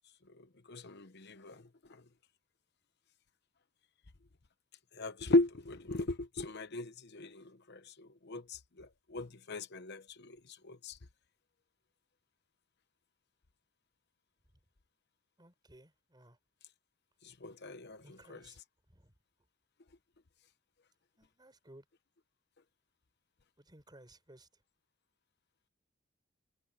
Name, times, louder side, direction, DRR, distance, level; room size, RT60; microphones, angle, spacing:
voice 1, 0.7-1.6 1.9-2.0 5.0-10.4 10.6-11.0 17.2-18.5, left 2 dB, 55° left, 0.9 m, -36 dB
voice 2, 15.4-16.4 18.0-18.6 18.9-19.1 21.2-21.8 23.6-24.5, right 1 dB, 20° right, 4.9 m, -58 dB
head